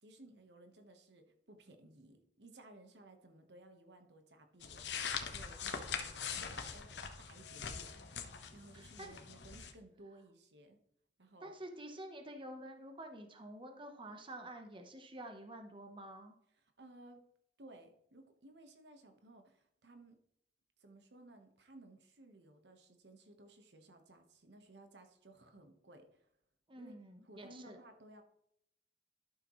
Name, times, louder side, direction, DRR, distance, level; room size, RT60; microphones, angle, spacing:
voice 1, 0.0-7.9 8.5-10.8 11.2-11.5 16.5-17.2 17.6-20.2 20.8-26.3 26.7-26.9 27.2-28.2, right 2 dB, 70° right, 6 dB, 1.3 m, -58 dB
sound 1, 4.6-9.7, left 6 dB, 80° left, 1.1 m, -43 dB
voice 2, 8.7-9.1 11.4-16.3 26.7-27.8, right 1 dB, 30° right, 5 dB, 1.0 m, -49 dB
12.0 x 6.8 x 3.1 m, 0.74 s
head